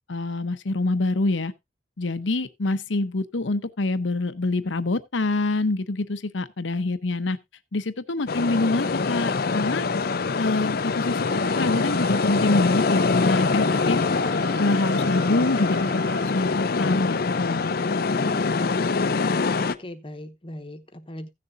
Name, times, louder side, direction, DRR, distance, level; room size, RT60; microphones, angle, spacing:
voice 1, 0.1-1.5 2.0-7.4 7.7-9.8 10.4-14.0 14.6-17.8, left 2 dB, 80° left, 0.8 m, -26 dB
sound 1, 8.3-19.7, left 4 dB, 55° left, 0.5 m, -24 dB
sound 2, 11.3-16.3, right 7 dB, 60° right, 0.7 m, -38 dB
voice 2, 19.5-21.3, left 1 dB, 30° left, 1.0 m, -39 dB
16.0 x 6.8 x 2.6 m
head